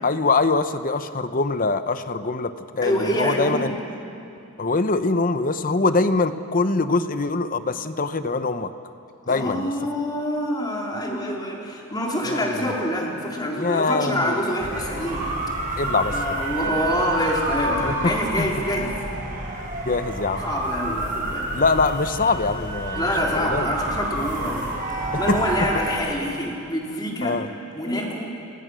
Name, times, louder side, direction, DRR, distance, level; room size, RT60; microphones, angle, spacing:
voice 1, 0.0-3.7 4.6-8.7 9.3-9.7 12.2-12.7 13.6-14.4 15.8-16.1 17.8-18.1 18.4-18.5 19.8-20.5 21.5-23.1 23.3-23.7 25.1-25.4 27.2-27.5, left 3 dB, 40° left, 11 dB, 0.8 m, -23 dB
voice 2, 2.8-3.8 9.3-15.3 16.1-19.0 20.4-21.5 22.9-24.7 25.2-27.4 27.7-28.3, equal, 20° left, -2 dB, 3.5 m, -26 dB
sound 1, 14.6-25.9, right 2 dB, 40° right, 5.4 m, -29 dB
29.5 x 21.5 x 6.3 m, 2.6 s
head